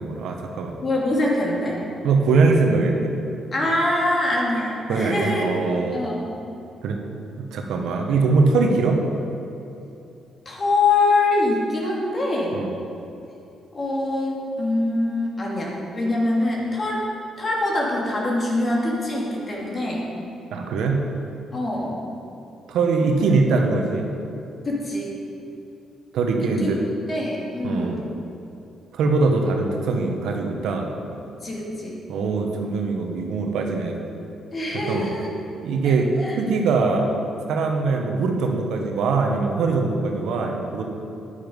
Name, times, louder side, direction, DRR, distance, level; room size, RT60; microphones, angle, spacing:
voice 1, 0.0-0.8 2.0-3.1 4.9-6.0 6.8-7.0 7.4-9.0 12.5-12.7 20.5-21.1 22.7-24.1 26.1-26.8 27.6-28.0 28.9-30.9 32.1-34.0 34.7-35.1 35.6-37.1 37.5-40.8, right 4 dB, 80° right, 2 dB, 1.2 m, -22 dB
voice 2, 0.8-1.8 3.5-5.4 5.9-6.3 10.4-12.6 13.7-17.0 17.4-20.1 21.5-22.0 24.6-25.1 26.4-26.7 27.1-28.0 31.4-32.0 34.5-35.3 35.8-36.4, left 2 dB, 35° left, -3 dB, 2.8 m, -24 dB
10.5 x 9.2 x 5.4 m, 2.8 s
cardioid pair, 90°, 0 cm